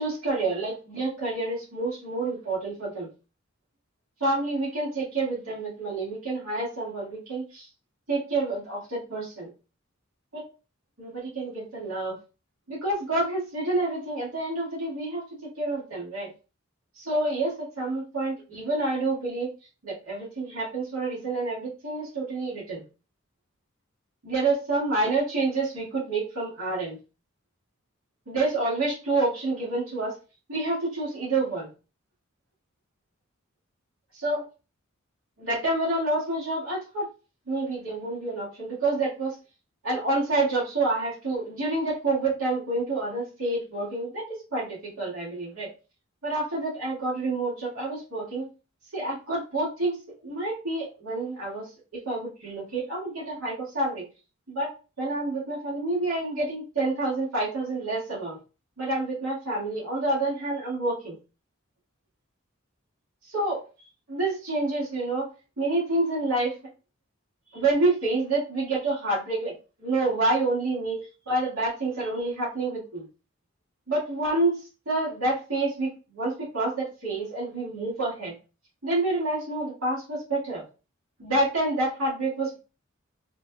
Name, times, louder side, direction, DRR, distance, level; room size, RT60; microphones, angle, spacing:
voice 1, 0.0-3.1 4.2-7.7 8.1-9.5 10.3-10.4 11.0-12.2 12.7-16.3 17.0-19.5 19.8-22.8 24.2-27.0 28.3-30.1 30.5-31.7 34.1-34.4 35.4-37.1 37.5-39.4 39.8-45.7 46.2-48.5 48.9-50.0 50.2-54.0 54.5-54.7 55.0-58.4 58.8-61.2 63.2-63.6 64.1-65.3 65.6-66.5 67.5-69.5 69.8-73.0 73.9-78.3 78.8-80.6 81.2-82.6, right 2 dB, 90° right, -6 dB, 2.0 m, -28 dB
3.8 x 3.3 x 2.3 m, 0.32 s
head